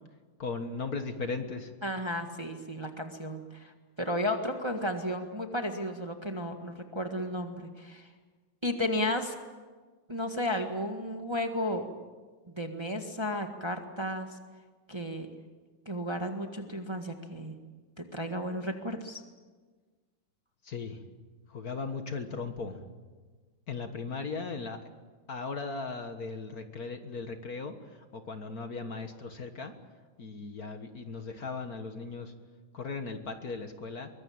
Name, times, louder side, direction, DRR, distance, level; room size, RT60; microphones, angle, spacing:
voice 1, 0.4-1.7 20.6-21.0 21.5-22.8 23.7-24.8 25.3-29.7 30.2-32.3 32.7-34.1, left 4 dB, 50° left, 7 dB, 1.9 m, -37 dB
voice 2, 1.8-3.7 4.0-8.1 8.6-9.3 10.1-11.9 12.5-14.3 14.9-15.3 15.8-17.6 18.0-19.2, left 1 dB, 15° right, 4 dB, 1.6 m, -33 dB
23.5 x 22.0 x 8.8 m, 1.4 s
omnidirectional pair, 2.2 m